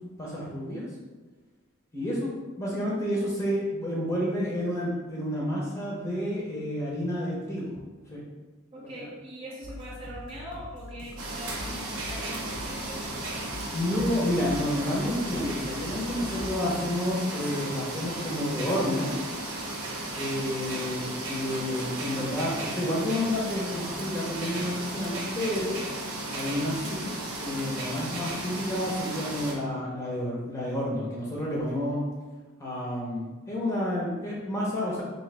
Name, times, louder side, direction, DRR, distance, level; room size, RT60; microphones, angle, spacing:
voice 1, 0.2-0.9 1.9-7.7 8.1-8.2 8.8-9.0 13.7-19.1 20.2-25.8 26.3-27.1 27.4-32.0 32.6-35.0, left 1 dB, 15° left, -5 dB, 0.7 m, -30 dB
voice 2, 8.7-13.5, equal, 25° right, -6 dB, 0.6 m, -42 dB
sound 1, 9.6-17.0, left 1 dB, 85° left, 0.7 m, -43 dB
sound 2, 11.2-29.5, right 2 dB, 85° right, 0.8 m, -35 dB
3.8 x 2.8 x 3.3 m, 1.3 s
head